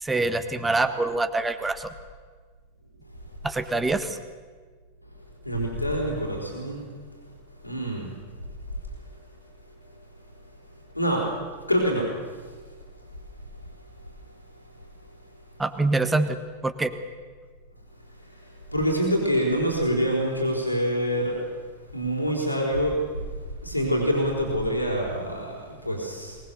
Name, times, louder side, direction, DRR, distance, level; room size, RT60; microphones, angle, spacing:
voice 1, 0.0-1.9 3.4-4.2 15.6-16.4 16.6-16.9, right 3 dB, 10° right, 10 dB, 1.4 m, -25 dB
voice 2, 5.4-6.8 7.6-8.1 10.9-11.3 11.7-12.1 18.7-21.4 21.9-23.0 23.6-26.4, equal, 90° left, -1 dB, 4.3 m, -25 dB
23.0 x 19.0 x 7.0 m, 1.5 s
figure-of-eight pair, 90°, 0 cm